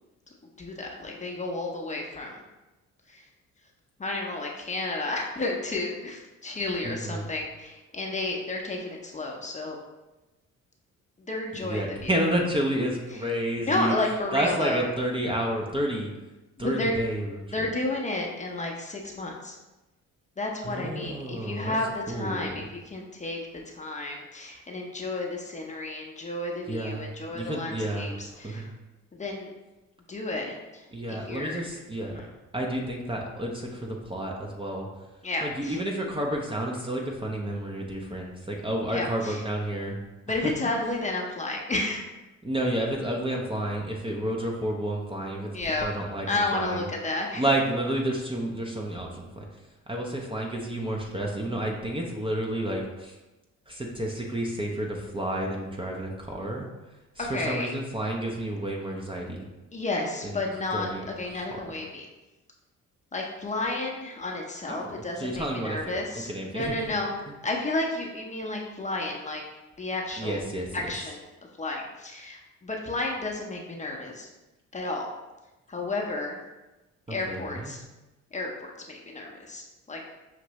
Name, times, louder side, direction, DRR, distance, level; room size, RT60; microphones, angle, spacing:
voice 1, 0.6-2.4 3.1-3.3 4.0-9.8 11.3-12.2 13.1-13.3 13.7-14.8 16.6-16.9 17.5-19.6 20.4-23.4 23.7-28.7 29.1-29.5 30.1-31.6 32.0-32.3 35.2-35.8 38.9-39.4 40.3-42.0 45.5-45.9 46.3-47.4 57.2-57.7 59.7-62.1 63.1-67.1 67.4-69.4 69.8-70.4 70.7-71.2 71.6-74.3 74.7-75.1 75.7-76.4 77.1-77.8 78.3-80.0, left 2 dB, 25° left, 0 dB, 0.7 m, -32 dB
voice 2, 6.8-7.3 11.5-13.9 14.3-16.1 16.6-17.7 20.6-21.8 22.1-22.6 26.7-27.1 27.3-28.1 28.4-28.7 30.9-32.2 32.5-34.9 35.4-40.0 40.4-40.5 42.4-45.5 45.8-46.8 47.3-49.5 49.9-53.1 53.7-56.7 57.2-59.5 60.2-60.4 60.7-61.1 64.7-66.0 66.3-66.7 70.2-70.7 77.1-77.7, right 1 dB, 15° right, -1 dB, 0.6 m, -30 dB
5.8 x 2.5 x 3.1 m, 1.1 s
cardioid pair, 90°, 30 cm